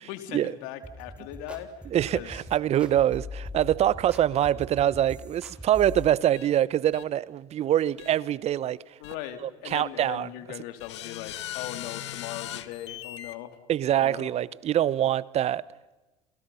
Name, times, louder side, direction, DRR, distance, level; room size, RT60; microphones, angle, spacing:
voice 1, 0.1-1.7 2.1-2.4 9.0-13.6 14.0-14.3, left 12 dB, 75° left, 3.3 m, -39 dB
sound 1, 0.8-6.1, left 2 dB, 5° right, 4.5 m, -41 dB
voice 2, 1.9-8.8 9.4-10.3 13.7-15.6, right 11 dB, 50° right, 0.9 m, -24 dB
sound 2, 6.3-6.5 6.9-7.0 8.0-8.1 9.0-9.1 9.7-9.8 10.8-13.3, left 13 dB, 90° left, 1.2 m, -39 dB
30.0 x 28.0 x 5.8 m
hypercardioid pair, 75°, 14 cm